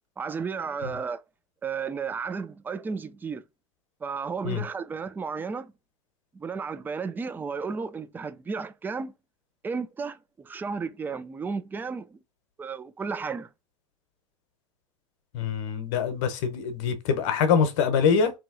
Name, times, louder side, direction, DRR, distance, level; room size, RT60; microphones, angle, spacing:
voice 1, 0.2-1.2 1.6-3.4 4.0-5.7 6.3-9.1 9.6-12.2 12.6-13.5, right 5 dB, 10° right, 0.3 m, -33 dB
voice 2, 15.3-18.3, left 6 dB, 60° left, 0.8 m, -24 dB
3.0 x 2.7 x 2.5 m
hypercardioid pair, 85°, 17 cm